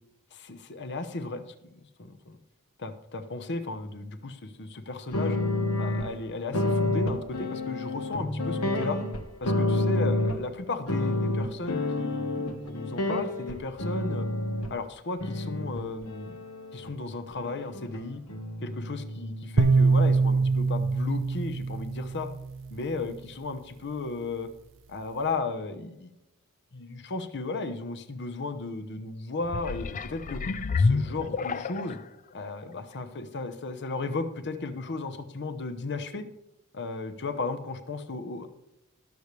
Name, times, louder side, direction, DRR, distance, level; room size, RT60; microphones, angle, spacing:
voice 1, 0.3-1.4 1.7-2.4 2.8-5.4 5.8-9.0 9.4-14.3 14.7-16.4 16.7-18.2 18.6-22.3 22.7-24.5 24.9-26.1 26.7-30.4 30.8-32.0 32.3-36.3 36.7-38.5, left 3 dB, 50° left, 10 dB, 0.9 m, -35 dB
sound 1, 5.1-6.1 6.5-10.5 10.9-14.7 15.2-16.9 17.3-18.0 18.3-20.5, left 2 dB, 70° left, 1.3 m, -29 dB
sound 2, 19.6-22.8, right 4 dB, 60° right, 0.7 m, -24 dB
sound 3, 29.4-32.1 32.7-32.8, left 4 dB, 35° left, 0.4 m, -28 dB
20.0 x 6.8 x 3.3 m, 0.93 s
head